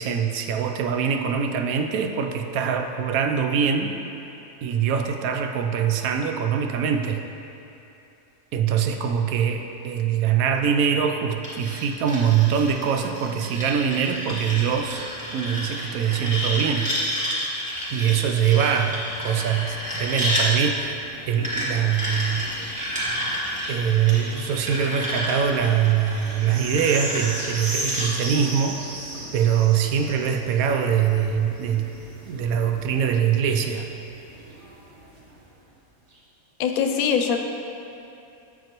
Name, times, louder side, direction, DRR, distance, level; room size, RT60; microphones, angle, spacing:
voice 1, 0.0-4.0 4.6-7.2 8.5-15.0 15.3-16.9 17.9-21.0 21.3-22.5 23.7-28.8 29.3-31.9 32.3-33.9, right 8 dB, 80° right, 5 dB, 1.0 m, -23 dB
sound 1, 11.4-20.5 21.4-28.1, equal, 5° right, 1.6 m, -30 dB
sound 2, 19.6-35.5 36.1-36.2, right 1 dB, 55° right, 1.3 m, -38 dB
voice 2, 36.6-37.4, left 7 dB, 85° left, 5 dB, 1.0 m, -22 dB
8.1 x 7.2 x 2.9 m, 2.9 s
omnidirectional pair, 1.5 m